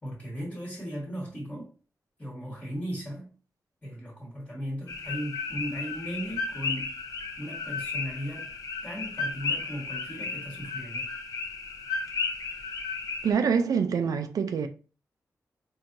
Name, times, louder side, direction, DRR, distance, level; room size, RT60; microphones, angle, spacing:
voice 1, 0.0-1.7 2.2-3.3 3.8-6.9 7.4-8.5 8.8-11.1, equal, 15° left, 1.2 m, -37 dB
sound 1, 4.9-13.3, left 4 dB, 75° left, 0.7 m, -34 dB
voice 2, 13.2-14.7, right 6 dB, 75° right, 0.4 m, -25 dB
4.5 x 2.7 x 2.5 m
wide cardioid pair, 145°, 6 cm